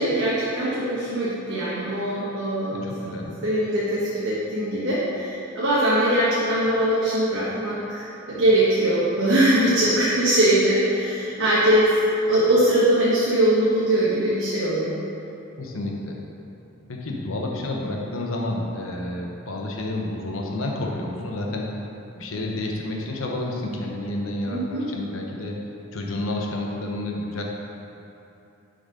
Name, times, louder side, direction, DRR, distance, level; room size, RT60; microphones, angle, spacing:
voice 1, 0.0-2.9 3.4-11.9 12.3-14.9 24.5-24.9, right 1 dB, 60° right, -9 dB, 1.1 m, -21 dB
voice 2, 2.7-3.4 15.6-16.2 16.9-21.8 22.1-25.6 25.9-27.4, left 2 dB, 75° left, 0 dB, 0.9 m, -30 dB
6.9 x 4.0 x 5.2 m, 2.8 s
head